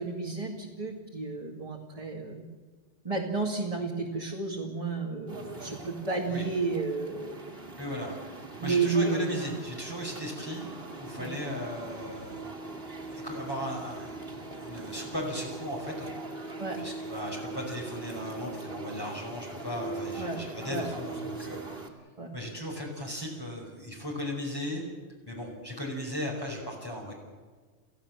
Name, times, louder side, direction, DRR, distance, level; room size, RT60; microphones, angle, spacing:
voice 1, 0.0-2.4 3.0-7.5 8.6-9.5 11.2-11.3 16.6-16.8 20.2-20.4 20.7-21.0 22.2-22.3, right 4 dB, 30° right, -1 dB, 2.4 m, -31 dB
sound 1, 5.3-21.9, right 3 dB, 55° right, 2.9 m, -41 dB
voice 2, 7.8-8.2 8.6-12.7 13.1-16.5 16.8-21.8 22.3-24.8 25.3-27.1, left 1 dB, 20° left, -2 dB, 5.3 m, -37 dB
29.5 x 15.5 x 7.5 m, 1.5 s
omnidirectional pair, 1.2 m